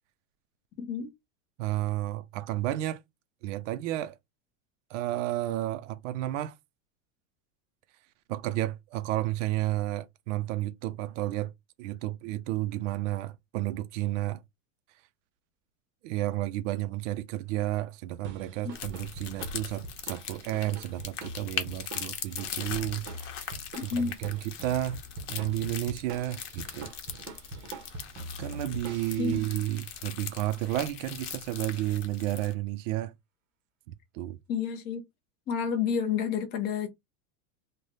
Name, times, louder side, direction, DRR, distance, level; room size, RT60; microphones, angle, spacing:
voice 1, 0.8-1.1 23.9-24.2 29.2-29.4 34.5-35.0 35.5-36.9, left 7 dB, 25° left, 0.6 m, -29 dB
voice 2, 1.6-3.0 3.4-4.2 4.9-6.5 8.3-11.5 11.8-14.4 16.0-23.6 23.8-25.0 25.3-26.9 28.4-33.1 33.9-34.4, right 15 dB, 75° right, 0.5 m, -32 dB
sound 1, 18.2-30.2, right 2 dB, 30° right, 0.7 m, -44 dB
sound 2, 18.7-32.5, left 8 dB, 70° left, 1.0 m, -40 dB
3.3 x 2.1 x 3.9 m
supercardioid pair, 175°, 38 cm